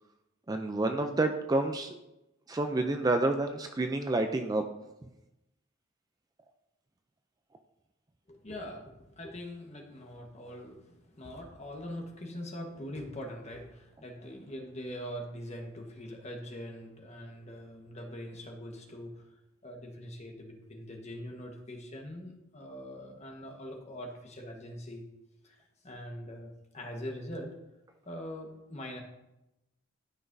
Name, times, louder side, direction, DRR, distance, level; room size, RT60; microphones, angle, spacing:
voice 1, 0.5-2.0 2.5-4.7, right 2 dB, 20° right, 6 dB, 0.3 m, -29 dB
voice 2, 8.3-25.0 25.4-27.5 28.0-29.0, equal, 30° left, 1 dB, 1.3 m, -43 dB
12.5 x 5.9 x 2.6 m, 0.93 s
head